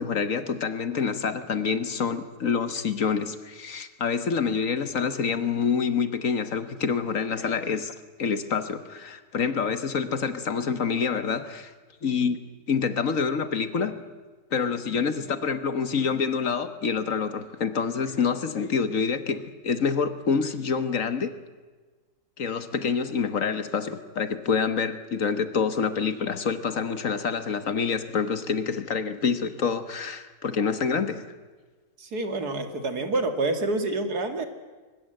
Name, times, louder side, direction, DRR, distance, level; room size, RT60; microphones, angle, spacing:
voice 1, 0.0-11.7 12.0-12.4 12.7-14.0 14.5-21.3 22.4-31.2, left 6 dB, 55° left, 10 dB, 1.6 m, -27 dB
voice 2, 32.0-34.5, right 2 dB, 70° right, 7 dB, 2.5 m, -27 dB
23.5 x 20.5 x 7.8 m, 1.4 s
omnidirectional pair, 1.7 m